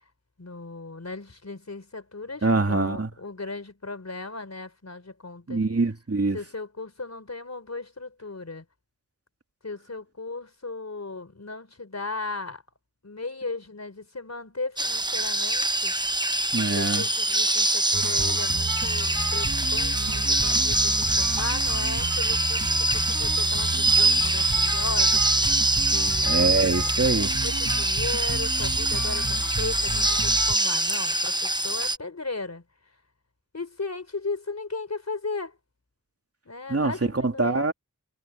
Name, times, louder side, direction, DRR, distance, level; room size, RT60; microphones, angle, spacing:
voice 1, 0.4-5.6 6.3-8.6 9.6-12.6 13.0-15.9 16.7-26.4 27.1-32.6 33.5-35.6 36.4-37.7, left 3 dB, 55° left, 4.2 m, -36 dB
voice 2, 2.4-3.1 5.5-6.4 16.5-17.0 26.2-27.3 36.7-37.7, right 3 dB, 50° right, 2.7 m, -24 dB
sound 1, 14.8-32.0, right 2 dB, 15° right, 0.9 m, -24 dB
sound 2, 17.9-30.5, right 3 dB, 65° right, 7.0 m, -32 dB
wide cardioid pair, 65°, 32 cm